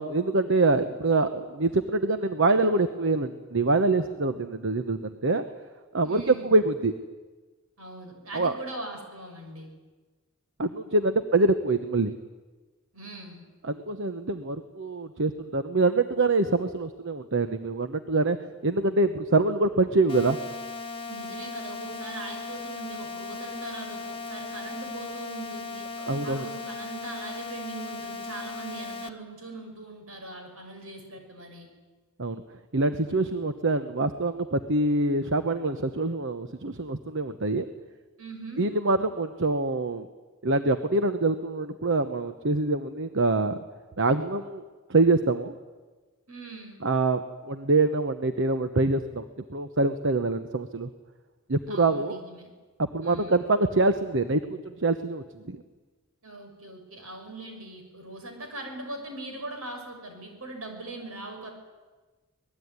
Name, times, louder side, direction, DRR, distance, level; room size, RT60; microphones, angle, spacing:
voice 1, 0.0-5.4 5.9-6.9 8.3-8.5 10.6-12.1 13.7-18.4 18.6-20.4 26.0-26.4 32.2-32.4 32.7-37.7 38.6-40.1 40.4-43.6 44.0-44.6 44.9-45.6 46.8-50.9 51.5-52.2 52.8-54.4 54.6-55.6, right 2 dB, 60° right, 9 dB, 1.1 m, -25 dB
voice 2, 6.0-6.6 7.8-9.7 12.9-13.5 21.1-25.9 26.2-31.7 38.2-38.7 46.3-46.9 51.7-52.5 53.0-53.4 56.2-61.5, right 2 dB, 80° right, 4 dB, 6.6 m, -41 dB
sound 1, 20.1-29.1, left 4 dB, 25° left, 1.3 m, -37 dB
26.0 x 20.0 x 9.7 m, 1.3 s
head